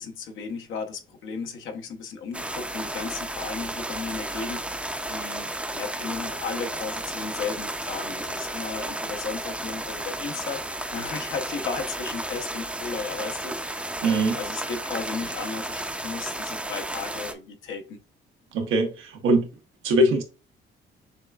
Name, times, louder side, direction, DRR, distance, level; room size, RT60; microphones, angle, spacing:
voice 1, 0.0-18.0, left 5 dB, 80° left, 0.9 m, -35 dB
sound 1, 2.3-17.3, right 1 dB, 5° right, 0.5 m, -33 dB
voice 2, 14.0-14.4 18.5-19.5 19.8-20.2, right 1 dB, 90° right, 0.9 m, -22 dB
6.6 x 2.3 x 2.3 m
cardioid pair, 90°, 20 cm